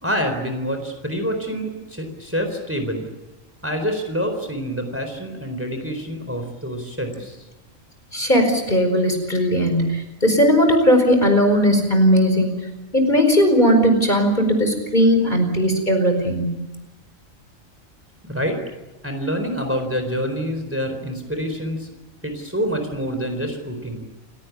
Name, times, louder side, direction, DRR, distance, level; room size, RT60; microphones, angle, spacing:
voice 1, 0.0-3.0 3.6-7.4 18.2-18.6 19.0-21.9 22.2-24.1, equal, 10° right, 5 dB, 4.1 m, -26 dB
voice 2, 8.1-12.5 12.9-16.6, equal, 35° left, 5 dB, 4.9 m, -17 dB
29.5 x 17.5 x 9.6 m, 1.0 s
omnidirectional pair, 1.4 m